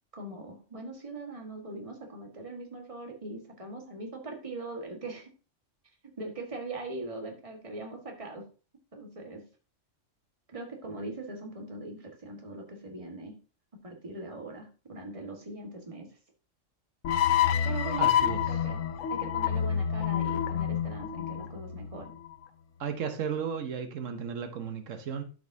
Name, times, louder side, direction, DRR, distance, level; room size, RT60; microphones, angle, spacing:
voice 1, 0.1-5.3 6.0-8.5 8.9-9.5 10.5-13.4 13.8-16.1 17.6-18.1 18.4-18.8 19.1-22.1, right 2 dB, 25° right, 2 dB, 1.6 m, -41 dB
sound 1, 17.0-22.3, left 9 dB, 85° left, 1.1 m, -28 dB
voice 2, 18.0-18.4 22.8-25.2, right 7 dB, 85° right, 8 dB, 1.3 m, -34 dB
13.0 x 5.1 x 2.7 m, 0.35 s
omnidirectional pair, 1.3 m